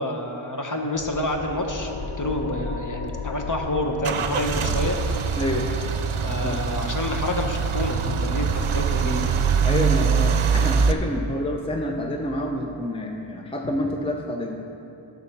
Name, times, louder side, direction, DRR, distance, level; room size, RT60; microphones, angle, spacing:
voice 1, 0.0-5.0 6.2-9.3 13.6-13.7, left 1 dB, 40° left, 3 dB, 1.0 m, -28 dB
sound 1, 0.9-12.0, left 3 dB, 75° left, 0.7 m, -37 dB
Car / Engine starting / Idling, 3.1-10.9, right 6 dB, 80° right, 0.6 m, -24 dB
sound 2, 4.0-11.2, right 3 dB, 25° right, 0.5 m, -38 dB
voice 2, 5.4-5.7 6.4-6.6 9.6-14.6, left 1 dB, 10° left, 2 dB, 0.7 m, -28 dB
11.0 x 4.1 x 7.4 m, 2.9 s
wide cardioid pair, 55°, 49 cm